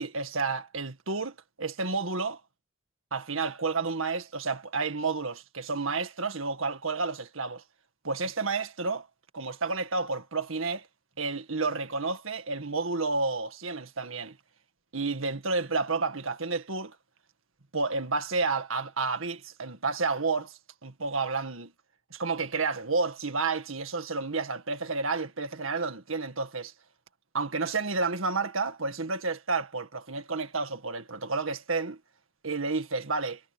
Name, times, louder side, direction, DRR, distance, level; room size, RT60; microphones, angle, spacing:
voice 1, 0.0-2.4 3.1-7.6 8.0-9.1 9.3-10.9 11.2-14.4 14.9-17.0 17.7-21.7 22.1-26.7 27.3-32.0 32.4-33.4, right 4 dB, 80° right, 2.0 m, -30 dB
head